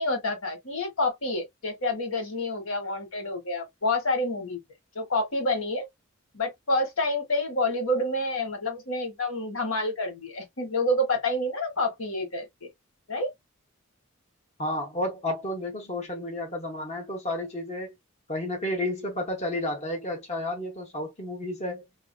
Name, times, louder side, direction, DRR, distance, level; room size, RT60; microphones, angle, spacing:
voice 1, 0.0-4.6 4.9-5.8 6.3-12.7 13.1-13.3, left 1 dB, 75° left, 1.3 m, -28 dB
voice 2, 14.6-17.9 18.3-21.8, left 1 dB, 35° left, 0.8 m, -31 dB
3.3 x 2.6 x 2.3 m
head